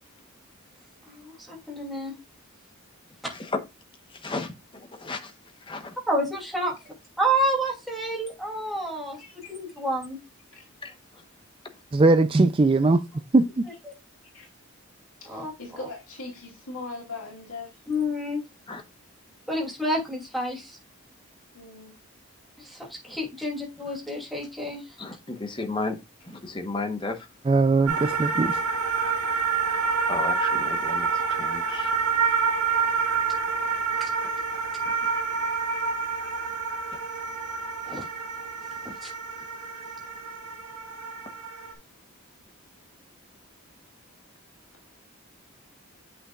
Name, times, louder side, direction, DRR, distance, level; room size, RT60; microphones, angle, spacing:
voice 1, 1.1-2.1 6.1-6.7 7.2-10.2 13.8-13.9 15.3-15.5 17.9-18.4 19.5-20.8 22.6-24.9 34.0-34.1 37.9-38.0 39.0-39.1, right 1 dB, ahead, 2.6 m, -29 dB
voice 2, 4.1-5.3 5.6-6.0 10.8-11.2 18.7-18.8 23.9-24.0 25.0-26.0 26.2-27.3 30.1-32.1 34.8-34.9, left 3 dB, 20° left, 1.0 m, -34 dB
voice 3, 9.2-9.5 10.5-10.6 14.3-14.5 15.2-17.8 21.5-21.9, left 3 dB, 75° left, 2.8 m, -40 dB
voice 4, 11.9-13.0 13.3-13.7 27.5-28.6, right 3 dB, 25° right, 0.3 m, -20 dB
sound 1, 27.9-41.7, right 5 dB, 90° right, 1.9 m, -28 dB
8.0 x 6.4 x 2.4 m
head